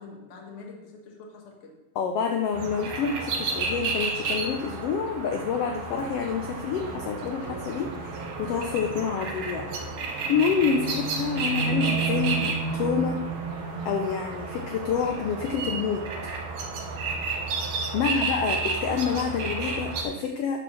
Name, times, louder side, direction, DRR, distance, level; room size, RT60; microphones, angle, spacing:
voice 1, 0.0-1.7 17.9-18.3, left 4 dB, 45° left, 0 dB, 0.9 m, -45 dB
voice 2, 1.9-9.7 10.3-13.2 13.8-16.0 17.9-20.6, left 6 dB, 85° left, 3 dB, 1.3 m, -28 dB
sound 1, 2.5-20.0, right 4 dB, 60° right, 1.5 m, -31 dB
9.8 x 4.4 x 6.2 m, 1.0 s
omnidirectional pair, 3.5 m